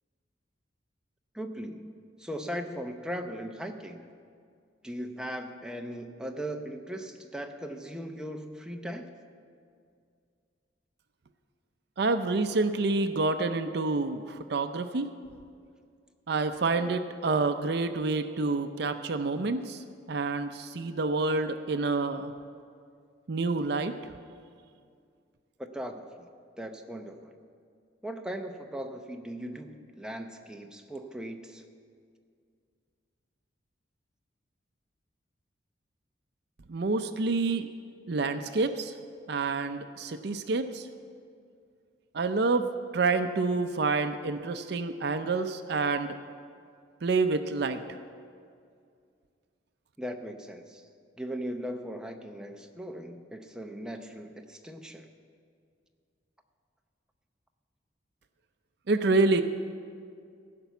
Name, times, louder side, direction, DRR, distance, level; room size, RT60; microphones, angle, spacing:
voice 1, 1.3-4.1 4.8-9.1 25.6-26.3 26.6-27.3 28.0-31.6 50.0-50.9 51.2-55.1, equal, 5° right, 4 dB, 0.7 m, -38 dB
voice 2, 12.0-15.1 16.3-22.3 23.3-24.0 36.7-37.7 38.1-38.9 39.3-40.9 42.1-46.2 47.0-47.8 58.9-59.4, right 3 dB, 60° right, 8 dB, 0.5 m, -28 dB
16.0 x 5.9 x 8.1 m, 2.3 s
head